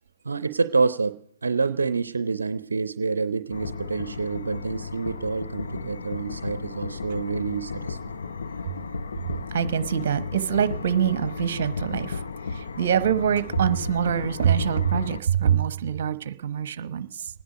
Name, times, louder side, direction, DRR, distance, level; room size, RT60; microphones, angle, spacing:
voice 1, 0.2-8.2, right 4 dB, 80° right, 12 dB, 0.6 m, -27 dB
sound 1, 3.5-15.2, left 4 dB, 75° left, 0.7 m, -34 dB
voice 2, 9.5-12.2 12.5-17.3, right 9 dB, 55° right, 13 dB, 1.0 m, -24 dB
26.5 x 10.0 x 5.1 m, 0.64 s
hypercardioid pair, 125°, 0 cm